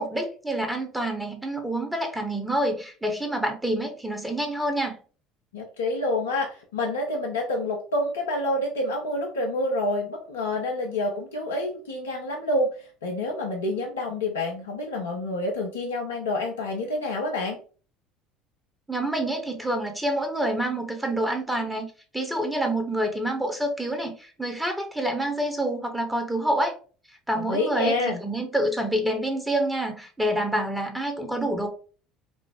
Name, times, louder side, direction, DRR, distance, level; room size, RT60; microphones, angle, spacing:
voice 1, 0.0-5.0 18.9-21.9 22.1-26.7 27.3-28.0 28.2-31.7, right 1 dB, 5° right, 5 dB, 1.1 m, -27 dB
voice 2, 5.5-12.7 13.0-17.6 27.3-28.2, left 1 dB, 85° left, 0 dB, 0.8 m, -28 dB
5.2 x 2.1 x 3.6 m, 0.38 s
hypercardioid pair, 65°, 0 cm